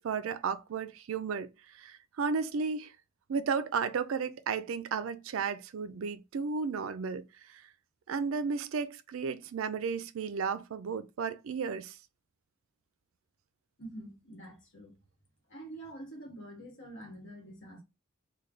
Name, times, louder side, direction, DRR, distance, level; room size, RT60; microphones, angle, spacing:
voice 1, 0.0-1.5 1.7-2.9 3.3-7.3 8.1-12.0, right 5 dB, 65° right, 0.4 m, -33 dB
voice 2, 13.8-15.0 15.5-17.8, right 1 dB, 55° left, 1.3 m, -46 dB
3.2 x 2.2 x 3.8 m
head